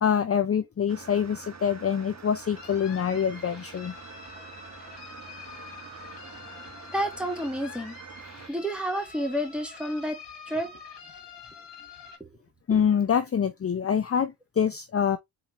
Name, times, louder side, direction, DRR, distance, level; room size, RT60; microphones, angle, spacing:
voice 1, 0.0-3.9 12.7-15.2, left 7 dB, 35° left, 0.6 m, -25 dB
sound 1, 0.9-8.5, right 5 dB, 40° right, 1.3 m, -46 dB
sound 2, 2.6-12.2, left 5 dB, 65° left, 2.0 m, -46 dB
voice 2, 6.9-8.0 8.5-10.7 12.2-12.3, equal, ahead, 2.3 m, -30 dB
4.3 x 3.7 x 3.2 m
cardioid pair, 55°, 44 cm